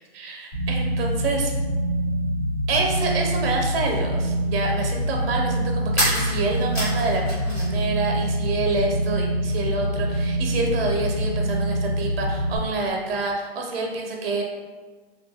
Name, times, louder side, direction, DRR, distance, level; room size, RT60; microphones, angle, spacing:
voice 1, 0.1-1.5 2.7-14.4, right 3 dB, 60° right, 0 dB, 0.6 m, -27 dB
sound 1, 0.5-12.6, right 1 dB, 55° left, 1.5 m, -25 dB
sound 2, 5.9-7.8 8.1-9.0, equal, 15° left, 0.6 m, -28 dB
2.7 x 2.4 x 2.6 m, 1.3 s
hypercardioid pair, 180°, 32 cm